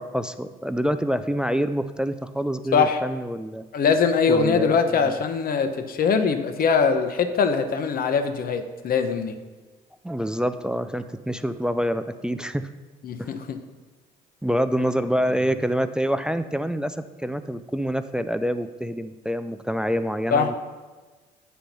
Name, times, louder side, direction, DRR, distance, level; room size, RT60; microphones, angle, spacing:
voice 1, 0.0-3.6 4.3-5.1 10.0-12.7 13.2-13.3 14.4-20.5, equal, 5° right, 11 dB, 0.3 m, -26 dB
voice 2, 3.7-9.4 13.0-13.6 20.3-20.6, left 5 dB, 50° left, 8 dB, 0.9 m, -22 dB
9.2 x 4.4 x 5.4 m, 1.3 s
supercardioid pair, 80°, 19 cm